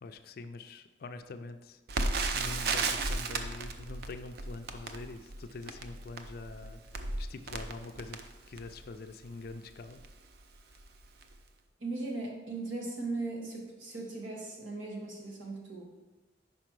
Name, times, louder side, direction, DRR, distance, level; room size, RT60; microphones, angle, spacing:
voice 1, 0.0-1.8 2.3-8.2 8.5-10.0, left 3 dB, 50° left, 9 dB, 0.4 m, -45 dB
Crackle, 1.9-8.9 9.5-9.6 9.9-10.1 10.7-10.9 11.2-11.3, right 3 dB, 55° right, 0.4 m, -34 dB
voice 2, 11.8-15.9, right 2 dB, 90° right, -1 dB, 1.4 m, -38 dB
5.2 x 4.9 x 4.6 m, 1.1 s
head